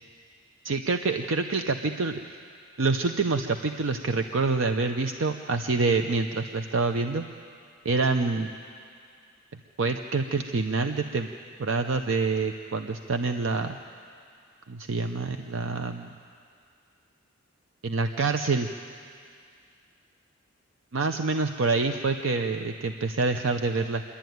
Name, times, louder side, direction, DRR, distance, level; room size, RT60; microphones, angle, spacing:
voice 1, 0.6-2.2 2.8-7.2 7.8-8.5 9.8-11.3 11.6-13.8 14.7-16.1 17.8-18.7 20.9-24.0, right 3 dB, 70° right, 7 dB, 0.6 m, -26 dB
26.5 x 11.5 x 9.4 m, 2.3 s
head